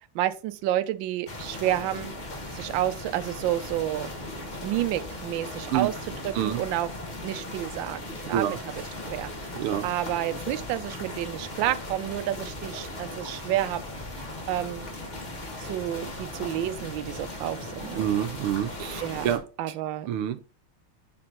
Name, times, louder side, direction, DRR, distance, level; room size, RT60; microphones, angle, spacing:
voice 1, 0.1-2.1 2.5-4.1 4.6-5.9 6.2-6.9 7.2-13.8 14.5-14.9 15.6-18.0 19.0-19.3 19.6-20.1, right 13 dB, 75° right, 1.2 m, -30 dB
sound 1, 1.3-19.4, left 1 dB, 25° left, 1.2 m, -38 dB
voice 2, 9.6-9.9 18.0-19.4 20.1-20.4, right 10 dB, 90° right, 1.6 m, -27 dB
5.9 x 4.3 x 3.8 m
omnidirectional pair, 2.4 m